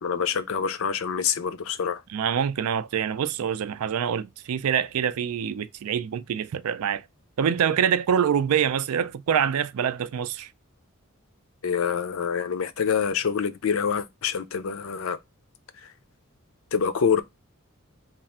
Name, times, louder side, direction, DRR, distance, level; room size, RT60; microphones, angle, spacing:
voice 1, 0.0-2.0 11.6-15.2 15.8-15.9 16.7-17.2, left 6 dB, 70° left, 0.5 m, -26 dB
voice 2, 2.1-7.0 7.4-10.5, right 8 dB, 85° right, 0.4 m, -25 dB
3.3 x 2.4 x 4.1 m
head